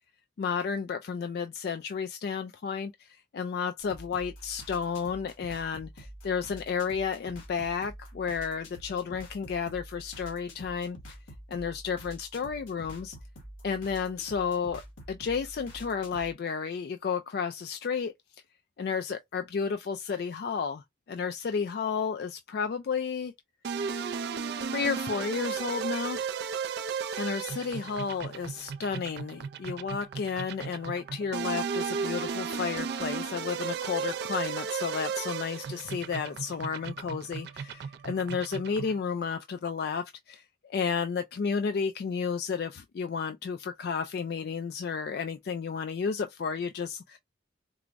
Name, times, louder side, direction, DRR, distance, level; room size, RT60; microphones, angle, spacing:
voice 1, 0.4-11.2 11.5-13.2 13.6-14.8 15.1-18.4 18.8-23.3 24.7-26.2 27.1-47.2, left 6 dB, 55° left, 0.3 m, -32 dB
sound 1, 3.8-16.3, equal, 85° left, 1.4 m, -47 dB
sound 2, 23.6-39.0, right 6 dB, 55° right, 0.3 m, -35 dB
4.5 x 2.0 x 2.5 m
head